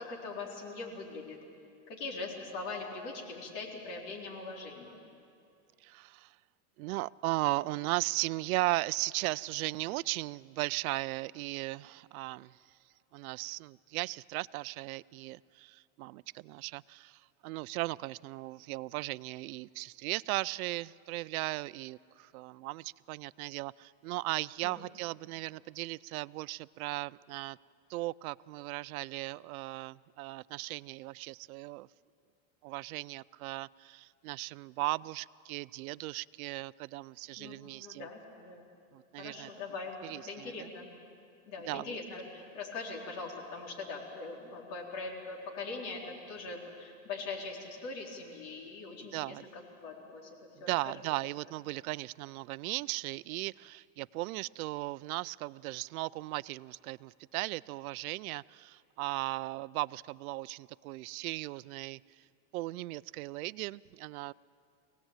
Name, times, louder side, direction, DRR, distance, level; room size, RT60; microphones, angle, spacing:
voice 1, 0.0-1.4 1.9-5.0 24.6-24.8 37.4-38.7 39.2-40.9 41.5-50.3 50.6-50.9, left 3 dB, 50° left, 0 dB, 4.1 m, -42 dB
voice 2, 5.8-6.3 6.8-12.6 13.1-27.6 27.9-31.9 32.6-38.1 38.9-39.5 40.0-40.7 41.7-42.0 49.1-49.5 50.7-62.0 62.5-64.3, right 20 dB, 85° right, 19 dB, 0.5 m, -37 dB
23.0 x 17.5 x 8.9 m, 2.5 s
supercardioid pair, 150°, 42 cm